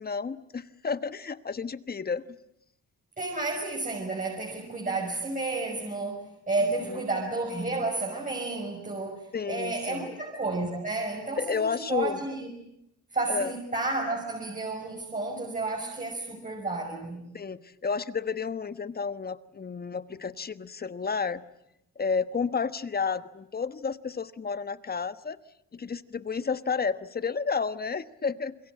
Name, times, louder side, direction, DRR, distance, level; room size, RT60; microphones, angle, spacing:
voice 1, 0.0-2.4 6.9-7.0 9.3-10.2 11.4-12.2 13.3-13.5 17.3-21.4 21.9-25.4 25.7-28.6, left 5 dB, 30° left, 14 dB, 1.3 m, -31 dB
voice 2, 3.2-12.5 13.1-17.2, right 3 dB, 25° right, -1 dB, 6.1 m, -31 dB
28.0 x 22.0 x 8.7 m, 0.81 s
cardioid pair, 90°, 30 cm